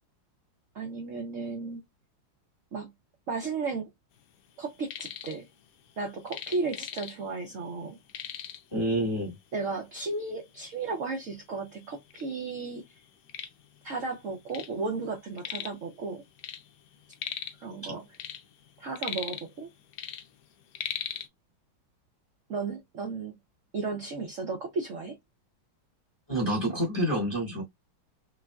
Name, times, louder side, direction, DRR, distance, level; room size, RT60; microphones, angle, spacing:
voice 1, 0.7-1.8 2.7-2.9 3.3-3.9 4.6-5.5 6.0-8.0 9.5-12.8 13.8-16.2 17.6-18.1 18.8-19.7 22.5-23.4 23.7-25.2, right 4 dB, 65° right, 0.8 m, -34 dB
sound 1, 4.6-5.4 5.7-7.4 7.7-7.8 8.1-8.8 9.5-9.6 10.2-10.3 11.0-11.1 11.4-12.2 12.7-14.8 15.0-15.9 16.1-17.7 18.0-19.7 19.9-21.3, left 9 dB, 75° left, 0.8 m, -38 dB
voice 2, 8.7-9.3 17.8-17.9 26.3-27.6, right 1 dB, 15° left, 0.9 m, -28 dB
3.6 x 2.5 x 2.2 m
omnidirectional pair, 2.2 m